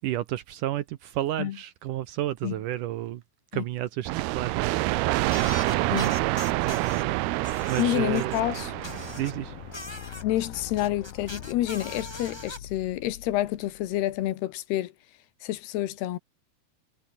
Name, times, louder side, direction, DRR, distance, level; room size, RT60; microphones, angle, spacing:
voice 1, 0.0-3.2 3.5-7.2 7.7-8.4 9.2-9.6, right 13 dB, 75° right, 2.1 m, -32 dB
sound 1, 4.1-9.6, right 19 dB, 90° right, 2.7 m, -27 dB
sound 2, 5.3-7.0 7.4-9.3 9.7-12.6, left 1 dB, 5° left, 4.3 m, -41 dB
voice 2, 7.8-8.7 10.2-14.9 15.4-16.2, left 14 dB, 90° left, 3.3 m, -28 dB
sound 3, 8.3-14.3, left 11 dB, 65° left, 3.5 m, -43 dB
omnidirectional pair, 4.5 m